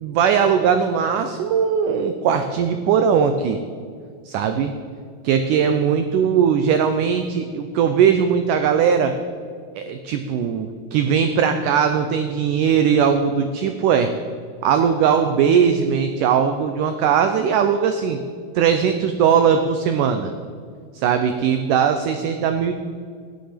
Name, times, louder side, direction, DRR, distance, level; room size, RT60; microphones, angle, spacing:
voice 1, 0.0-3.6 4.3-4.7 5.2-9.2 9.8-14.1 14.6-18.2 18.6-20.3 20.9-22.7, right 7 dB, 85° right, 8 dB, 1.8 m, -19 dB
13.5 x 10.0 x 5.1 m, 2.1 s
omnidirectional pair, 4.5 m